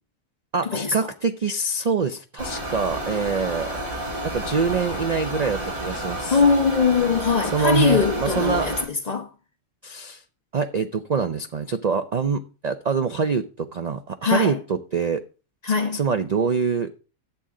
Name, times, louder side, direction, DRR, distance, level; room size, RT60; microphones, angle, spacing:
voice 1, 0.5-3.7 4.2-6.4 7.5-8.7 9.8-10.2 10.5-15.2 15.9-16.9, right 5 dB, 50° right, 0.5 m, -25 dB
sound 1, 2.4-8.8, right 1 dB, 80° right, 4.1 m, -30 dB
voice 2, 6.3-8.8 9.1-9.3 14.2-14.6 15.6-16.0, left 5 dB, 30° left, 1.1 m, -21 dB
11.5 x 8.5 x 3.7 m
omnidirectional pair, 1.4 m